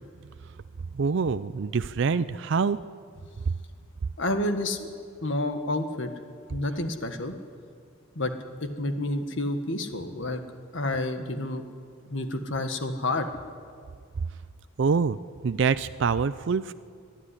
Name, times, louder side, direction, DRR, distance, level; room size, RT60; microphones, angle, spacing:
voice 1, 0.9-2.8 14.8-15.2 15.4-16.7, right 5 dB, 60° right, 13 dB, 0.4 m, -25 dB
voice 2, 4.2-4.9 5.2-6.1 6.5-7.3 8.1-8.3 8.6-10.4 10.7-11.6 12.1-13.5, left 1 dB, 60° left, 7 dB, 1.6 m, -29 dB
24.5 x 11.0 x 9.8 m, 2.2 s
head